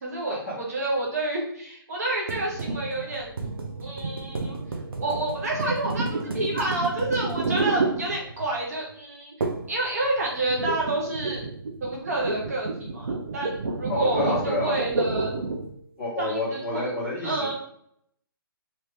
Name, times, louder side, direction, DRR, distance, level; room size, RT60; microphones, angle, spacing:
voice 1, 0.0-3.3 3.8-4.6 5.0-9.3 9.7-11.4 11.8-15.3 16.2-16.9 17.2-17.5, right 2 dB, 45° right, -3 dB, 1.0 m, -29 dB
sound 1, 2.3-8.6 9.4-9.8 10.0-15.7, right 3 dB, 75° right, 0.7 m, -30 dB
voice 2, 13.9-14.8 16.0-17.5, left 2 dB, 5° left, -12 dB, 1.1 m, -29 dB
3.2 x 2.7 x 3.3 m, 0.65 s
hypercardioid pair, 170°, 12 cm